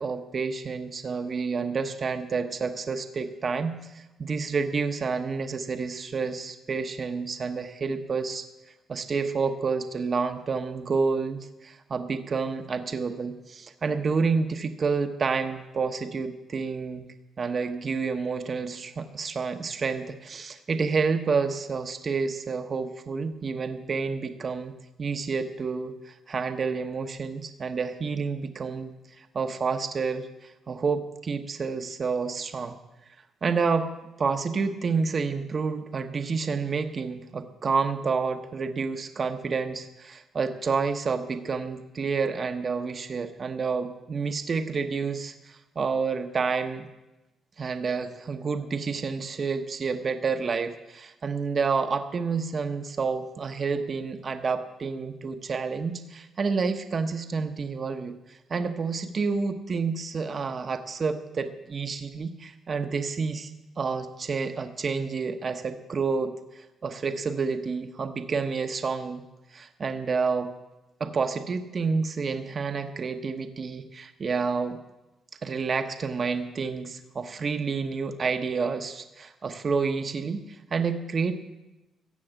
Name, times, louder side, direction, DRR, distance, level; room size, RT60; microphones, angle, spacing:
voice 1, 0.0-8.4 8.9-17.1 17.4-24.7 25.0-32.8 33.4-33.9 34.2-46.9 47.6-63.5 63.8-69.2 69.5-70.5 71.0-74.8 75.4-81.3, right 5 dB, 40° right, 7 dB, 1.0 m, -29 dB
14.5 x 6.9 x 8.9 m, 1.0 s
cardioid pair, 90°, 0 cm